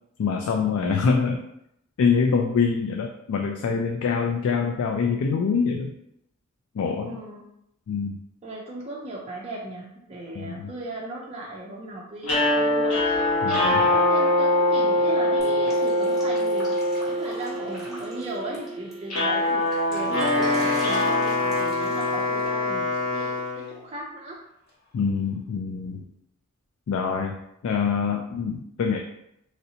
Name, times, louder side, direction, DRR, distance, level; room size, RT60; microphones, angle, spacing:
voice 1, 0.2-1.4 2.0-5.9 6.7-7.2 7.9-8.2 10.3-10.7 13.4-13.8 24.9-26.0 26.9-27.4 27.6-29.0, left 5 dB, 70° left, 3 dB, 0.3 m, -25 dB
voice 2, 7.0-7.4 8.4-16.7 17.0-24.4, right 2 dB, 30° right, -3 dB, 0.4 m, -37 dB
sound 1, 12.2-22.4, left 1 dB, 85° left, 1.1 m, -24 dB
Drip, 15.4-18.9 19.3-22.5, equal, ahead, 0.8 m, -42 dB
Wind instrument woodwind instrument, 19.9-23.8, left 2 dB, 45° left, 0.8 m, -26 dB
3.1 x 2.7 x 2.7 m, 0.78 s
head